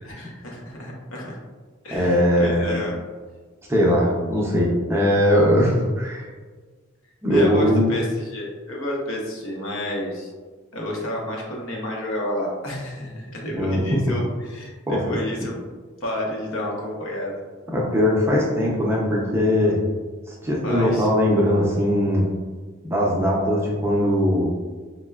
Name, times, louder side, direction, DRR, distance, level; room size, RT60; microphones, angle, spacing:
voice 1, 0.0-1.4 1.8-3.0 7.3-10.3 10.7-15.5 16.0-17.4 20.6-21.1, equal, 75° left, -2 dB, 0.7 m, -30 dB
voice 2, 1.9-2.8 3.7-6.3 7.2-7.9 13.5-14.0 14.9-15.2 17.7-19.8 20.3-22.3 22.8-24.5, equal, 10° right, -4 dB, 0.4 m, -20 dB
4.5 x 2.1 x 2.2 m, 1.4 s
head